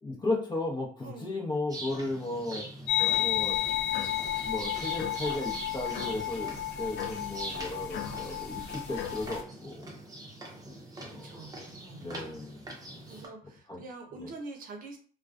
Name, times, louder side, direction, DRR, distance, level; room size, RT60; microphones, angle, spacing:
voice 1, 0.0-2.7 3.2-3.6 4.4-9.9 11.1-11.5 12.0-12.6 13.1-13.2 13.7-13.8 14.2-14.3, left 2 dB, 25° left, 0 dB, 0.8 m, -35 dB
sound 1, 1.7-13.3, right 1 dB, 20° right, 0.7 m, -43 dB
sound 2, 2.9-9.4, left 12 dB, 85° left, 0.4 m, -32 dB
voice 2, 11.1-12.0 13.1-15.0, right 3 dB, 55° right, 3 dB, 0.7 m, -45 dB
2.3 x 2.2 x 2.4 m, 0.43 s
cardioid pair, 110°, 17 cm